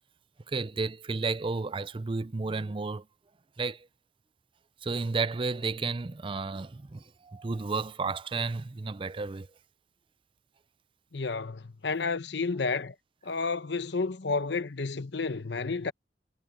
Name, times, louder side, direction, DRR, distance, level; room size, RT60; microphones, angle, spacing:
voice 1, 0.5-3.1 3.6-3.9 4.8-9.5, right 4 dB, 30° right, 0.5 m, -32 dB
voice 2, 11.1-12.9 13.2-15.9, left 4 dB, 75° left, 0.9 m, -31 dB
head